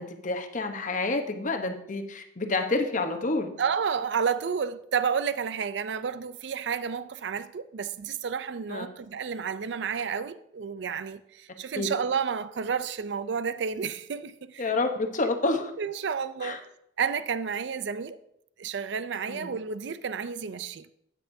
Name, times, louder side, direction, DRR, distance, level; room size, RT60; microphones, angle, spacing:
voice 1, 0.0-3.5 8.7-8.9 11.8-11.9 14.6-15.7 16.4-16.6 19.3-19.5, left 3 dB, 45° left, 0.9 m, -28 dB
voice 2, 3.6-14.7 15.8-16.6 17.0-18.2 18.6-20.9, right 6 dB, 70° right, 0.4 m, -31 dB
12.5 x 9.0 x 2.7 m
head